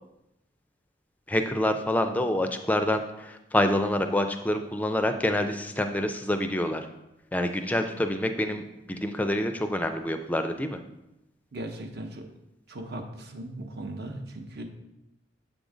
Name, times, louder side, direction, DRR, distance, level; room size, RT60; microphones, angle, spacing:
voice 1, 1.3-6.9 7.3-8.6 8.9-10.8, left 1 dB, 10° left, 7 dB, 0.4 m, -27 dB
voice 2, 11.5-12.3 12.7-14.6, right 1 dB, 55° right, 5 dB, 0.8 m, -38 dB
7.1 x 3.8 x 4.9 m, 0.90 s
head